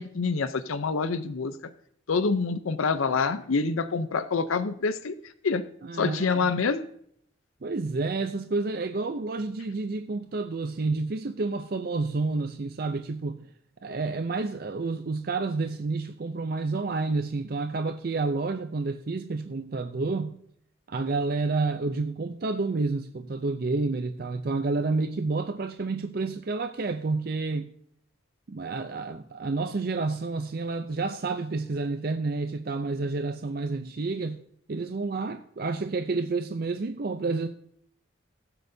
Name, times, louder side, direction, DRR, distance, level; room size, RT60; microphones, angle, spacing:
voice 1, 0.0-1.5 2.1-5.1 5.4-5.6 6.0-6.9, left 4 dB, 85° left, 0.6 m, -26 dB
voice 2, 5.8-6.5 7.6-13.5 13.8-20.4 20.9-27.7 28.5-34.4 34.7-37.5, right 3 dB, 45° right, 0.5 m, -29 dB
20.0 x 7.9 x 2.7 m
head